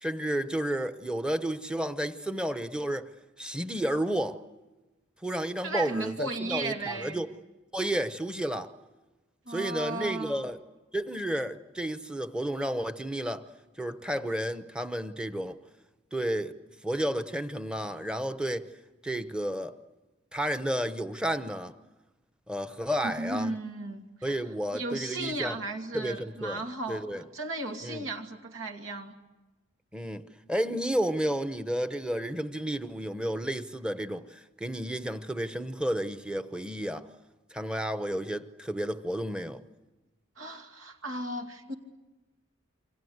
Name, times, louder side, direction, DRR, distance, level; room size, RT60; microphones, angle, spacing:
voice 1, 0.0-3.1 3.4-4.4 5.2-7.3 7.7-8.7 9.5-10.6 10.9-13.4 13.8-15.6 16.1-16.6 16.8-18.7 19.0-19.7 20.3-21.7 22.5-23.5 24.2-25.6 25.9-27.2 27.8-28.1 29.9-30.2 30.5-37.1 37.5-39.6, right 1 dB, 5° right, 0.9 m, -31 dB
voice 2, 5.6-7.2 9.5-10.5 23.0-24.3 24.7-29.2 40.4-41.7, right 2 dB, 80° right, 2.7 m, -35 dB
28.5 x 25.0 x 8.0 m
head